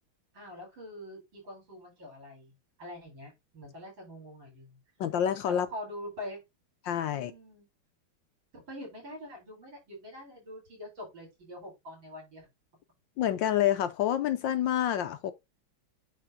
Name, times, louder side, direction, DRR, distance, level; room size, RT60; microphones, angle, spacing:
voice 1, 0.3-4.8 5.5-6.4 7.1-7.7 8.5-12.5, left 1 dB, 60° right, 5.5 m, -44 dB
voice 2, 5.0-5.7 6.8-7.3 13.2-15.3, left 10 dB, 70° left, 1.2 m, -28 dB
9.5 x 3.5 x 3.8 m
omnidirectional pair, 2.4 m